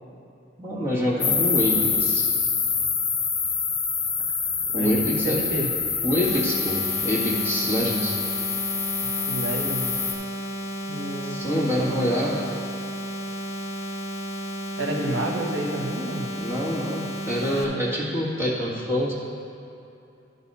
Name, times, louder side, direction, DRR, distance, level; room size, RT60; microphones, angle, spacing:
voice 1, 0.6-2.3 4.7-5.4 6.0-8.2 11.2-12.5 16.4-19.1, equal, 15° right, -7 dB, 1.7 m, -26 dB
sound 1, 1.2-10.1, left 5 dB, 20° left, 0.9 m, -26 dB
voice 2, 4.7-5.7 9.0-10.0 10.9-12.1 14.8-16.3 17.7-17.9, right 1 dB, 80° right, -2 dB, 1.3 m, -30 dB
sound 2, 6.2-17.6, right 1 dB, 40° left, 1.5 m, -33 dB
12.0 x 4.1 x 5.5 m, 2.8 s
head